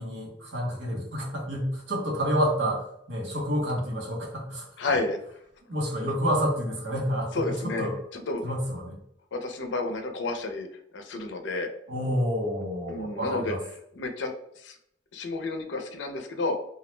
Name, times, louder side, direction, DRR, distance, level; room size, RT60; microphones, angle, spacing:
voice 1, 0.0-4.7 5.7-8.0 8.4-9.0 11.9-13.6, equal, 90° right, -3 dB, 0.9 m, -29 dB
voice 2, 4.8-5.2 7.3-8.4 9.3-10.7 10.9-11.7 12.9-13.6 14.0-14.8 15.1-16.6, left 2 dB, 75° left, 6 dB, 0.4 m, -30 dB
2.3 x 2.1 x 3.0 m, 0.72 s
head